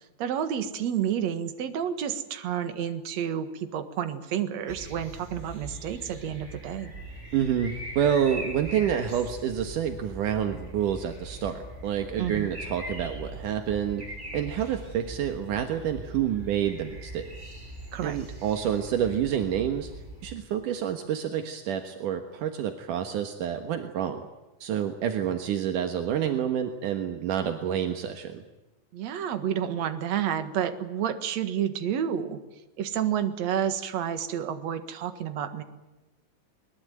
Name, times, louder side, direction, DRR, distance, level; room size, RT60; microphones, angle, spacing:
voice 1, 0.0-6.9 12.2-12.5 17.9-18.2 28.9-32.4 32.8-35.6, right 9 dB, 60° right, 9 dB, 2.8 m, -30 dB
sound 1, 4.7-20.4, right 1 dB, 20° right, 6.1 m, -41 dB
voice 2, 7.3-14.0 14.3-17.3 18.0-19.9 20.2-24.3 24.6-28.4, right 9 dB, 80° right, 6 dB, 3.0 m, -28 dB
22.0 x 21.5 x 9.3 m, 1.1 s
omnidirectional pair, 3.7 m